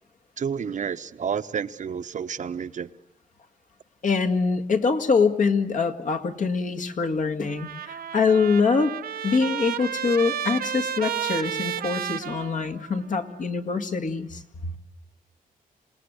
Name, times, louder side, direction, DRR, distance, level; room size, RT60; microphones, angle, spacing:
voice 1, 0.4-2.9, right 7 dB, 55° right, 1.0 m, -30 dB
voice 2, 4.0-8.9 9.2-14.7, left 5 dB, 60° left, 2.1 m, -24 dB
Trumpet, 7.5-13.1, right 9 dB, 80° right, 1.0 m, -32 dB
27.5 x 19.0 x 8.2 m
cardioid pair, 110°, 15 cm